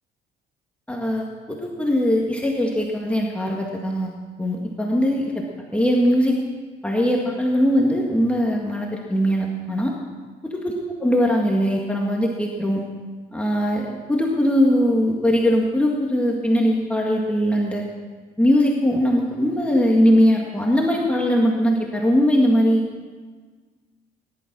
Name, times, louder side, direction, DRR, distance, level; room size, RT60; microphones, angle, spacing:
voice 1, 0.9-4.1 4.4-5.4 5.7-6.4 6.8-9.9 10.6-10.7 11.0-12.8 13.3-17.8 18.4-22.8, equal, 5° left, -1 dB, 1.8 m, -20 dB
18.5 x 11.5 x 6.1 m, 1.5 s
cardioid pair, 110°, 17 cm